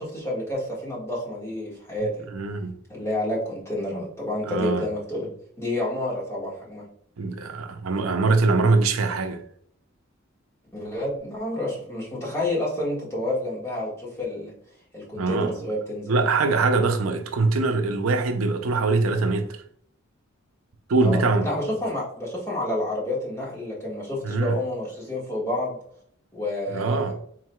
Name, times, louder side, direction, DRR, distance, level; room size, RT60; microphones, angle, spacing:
voice 1, 0.0-2.3 2.9-5.3 5.6-6.9 10.7-14.5 14.9-16.1 21.0-25.8 26.3-27.1, left 1 dB, 15° left, 1.6 m, -29 dB
voice 2, 2.3-2.8 4.5-4.8 7.2-9.4 15.2-15.5 16.1-19.6 20.9-21.5 24.2-24.6 26.7-27.1, right 3 dB, 85° right, 0.6 m, -23 dB
4.6 x 3.8 x 2.3 m
head